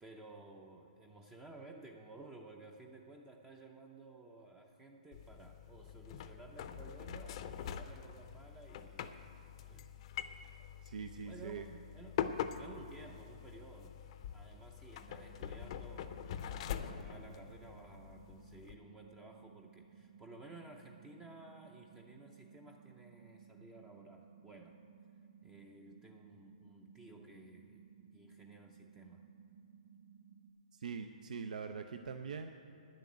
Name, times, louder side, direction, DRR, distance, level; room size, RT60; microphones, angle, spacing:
voice 1, 0.0-9.1 9.6-9.9 11.2-12.3 12.6-14.0 14.3-16.3 16.6-24.8 25.4-27.8 28.1-29.2, right 2 dB, 10° right, 2 dB, 0.6 m, -55 dB
sound 1, 5.1-18.7, left 9 dB, 45° left, 0.6 m, -44 dB
voice 2, 10.4-11.7 30.7-32.5, right 6 dB, 75° right, 7 dB, 0.6 m, -43 dB
sound 2, 14.9-30.5, right 7 dB, 30° right, 1.2 m, -60 dB
10.0 x 7.6 x 8.5 m, 2.9 s
hypercardioid pair, 150°, 4 cm